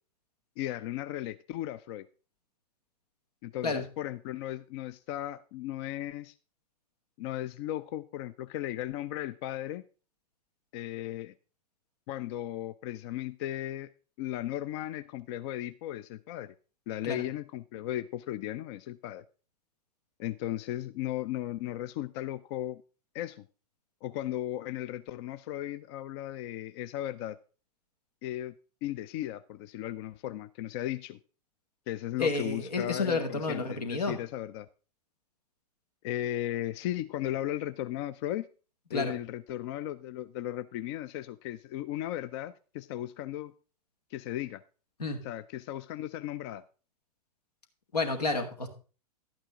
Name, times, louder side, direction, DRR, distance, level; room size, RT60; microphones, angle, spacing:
voice 1, 0.6-2.1 3.4-6.3 7.2-9.8 10.7-11.3 12.1-13.9 14.2-16.5 16.9-19.2 20.2-22.8 23.1-23.4 24.0-27.4 28.2-28.5 28.8-31.2 31.9-34.7 36.0-38.5 38.9-43.5 44.1-44.6 45.2-46.6, left 13 dB, 45° left, 14 dB, 0.4 m, -36 dB
voice 2, 32.2-34.2 38.9-39.1 45.0-45.2 47.9-48.7, left 3 dB, 80° left, 6 dB, 1.9 m, -30 dB
11.5 x 8.8 x 3.7 m, 0.35 s
hypercardioid pair, 105°, 20 cm